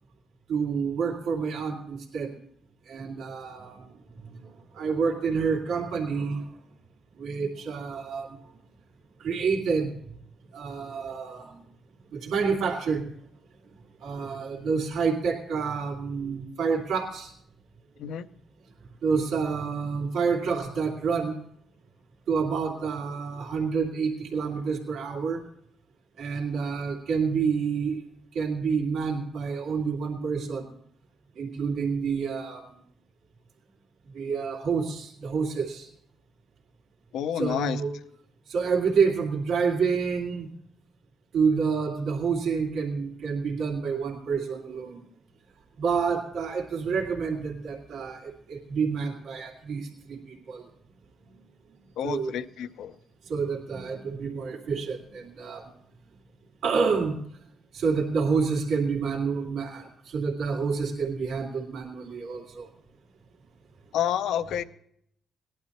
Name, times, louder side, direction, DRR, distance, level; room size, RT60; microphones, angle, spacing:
voice 1, 0.5-2.4 2.8-6.6 7.2-8.5 9.2-10.0 10.5-11.6 12.1-13.1 14.0-17.3 19.0-21.4 22.3-25.4 26.2-28.0 28.3-30.7 31.4-32.8 34.1-35.9 37.3-38.0 38.5-40.5 41.3-45.1 45.8-50.7 52.0-52.5 53.2-55.7 56.6-57.2 57.7-62.7, right 5 dB, 80° right, -2 dB, 2.3 m, -28 dB
voice 2, 37.1-37.8 52.0-52.9 63.9-64.6, left 10 dB, 80° left, 12 dB, 0.6 m, -29 dB
19.0 x 11.5 x 2.9 m, 0.69 s
cardioid pair, 90°, 0 cm